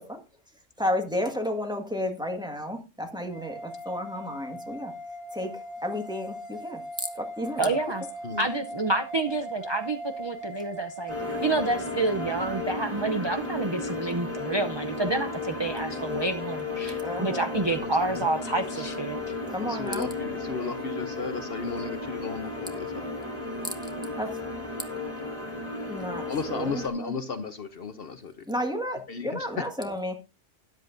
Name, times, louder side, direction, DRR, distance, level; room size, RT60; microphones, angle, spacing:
voice 1, 0.8-4.9 5.3-7.7 11.3-11.4 12.9-13.0 17.0-17.6 19.5-20.1 24.2-24.3 25.9-26.3 26.5-27.1 28.4-30.1, left 1 dB, 5° right, 4 dB, 1.6 m, -32 dB
sound 1, 3.3-12.7, right 1 dB, 90° left, 1.7 m, -39 dB
voice 2, 7.6-8.0 8.4-19.2, right 2 dB, 30° right, 7 dB, 0.5 m, -28 dB
sound 2, 11.1-26.9, left 2 dB, 25° left, 3.2 m, -34 dB
voice 3, 17.7-18.3 18.7-18.9 19.6-23.1 26.3-28.4 29.1-29.5, left 4 dB, 55° left, 10 dB, 1.0 m, -35 dB
13.0 x 11.0 x 2.6 m, 0.31 s
omnidirectional pair, 1.3 m